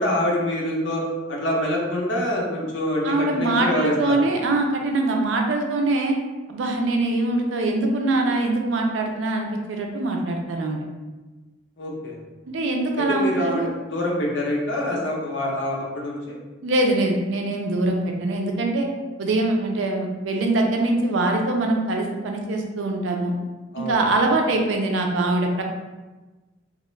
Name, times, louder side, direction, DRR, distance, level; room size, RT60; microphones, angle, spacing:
voice 1, 0.0-4.1 11.8-12.2 12.9-16.4 23.7-23.9, left 1 dB, 70° left, -2 dB, 0.6 m, -25 dB
voice 2, 3.0-6.2 6.5-10.8 12.5-13.7 16.6-18.9 19.2-23.3 23.8-25.6, right 2 dB, 90° right, 2 dB, 0.4 m, -23 dB
2.4 x 2.0 x 3.0 m, 1.2 s
head